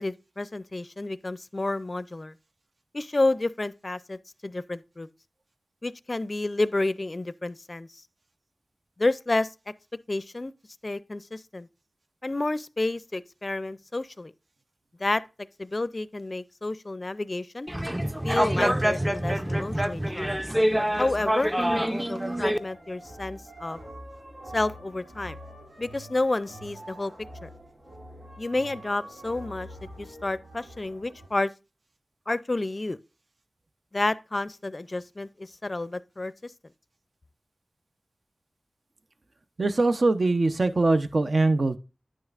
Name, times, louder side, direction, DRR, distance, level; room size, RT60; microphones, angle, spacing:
voice 1, 0.0-2.3 2.9-5.1 5.8-8.0 9.0-9.5 10.1-10.5 10.8-11.7 12.2-14.3 15.0-15.2 15.6-17.7 18.2-20.4 21.0-23.8 24.5-25.4 25.8-27.1 27.4-27.5 28.4-29.7 30.0-31.5 32.3-33.0 33.9-36.5, left 2 dB, 45° left, 0.4 m, -30 dB
sound 1, 17.7-22.6, equal, 10° right, 0.5 m, -26 dB
sound 2, 19.4-31.3, right 1 dB, 85° right, 2.5 m, -45 dB
voice 2, 39.6-41.8, right 2 dB, 60° right, 0.6 m, -22 dB
9.5 x 6.4 x 2.4 m
cardioid pair, 45°, 0 cm